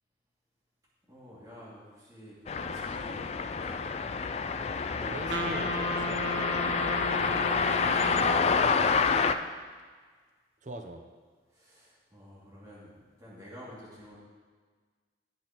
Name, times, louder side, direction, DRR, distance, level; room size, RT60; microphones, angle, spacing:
voice 1, 1.1-3.9 7.1-8.7 9.1-9.4 11.5-14.2, equal, 20° right, -8 dB, 2.4 m, -50 dB
sound 1, 2.5-9.3, left 5 dB, 35° left, 0.3 m, -28 dB
voice 2, 5.0-6.2 8.1-8.6 10.6-11.0, right 2 dB, 45° right, 5 dB, 0.6 m, -42 dB
Wind instrument woodwind instrument, 5.3-9.2, right 1 dB, 80° right, 0.9 m, -35 dB
18.0 x 6.2 x 3.0 m, 1.5 s
head